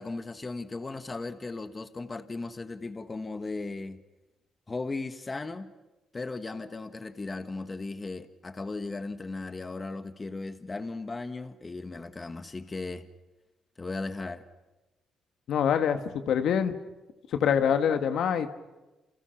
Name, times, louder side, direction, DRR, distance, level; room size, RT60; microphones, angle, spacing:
voice 1, 0.0-4.0 4.7-5.7 6.1-13.1 13.8-14.4, left 3 dB, 25° left, 1.4 m, -36 dB
voice 2, 15.5-16.8 17.3-18.5, left 8 dB, 70° left, 1.7 m, -25 dB
29.0 x 29.0 x 5.9 m
cardioid pair, 90°, 0 cm